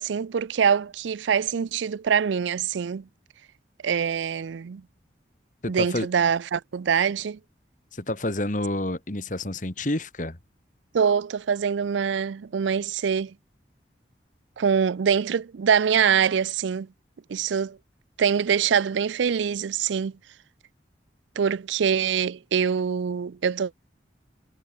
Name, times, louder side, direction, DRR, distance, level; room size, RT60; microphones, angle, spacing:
voice 1, 0.0-3.0 3.8-4.8 5.7-7.4 10.9-13.3 14.6-16.9 17.3-17.8 18.2-20.1 21.4-23.7, right 7 dB, 85° right, 0.4 m, -24 dB
voice 2, 5.6-6.1 7.9-10.4, left 1 dB, 45° left, 1.9 m, -29 dB
head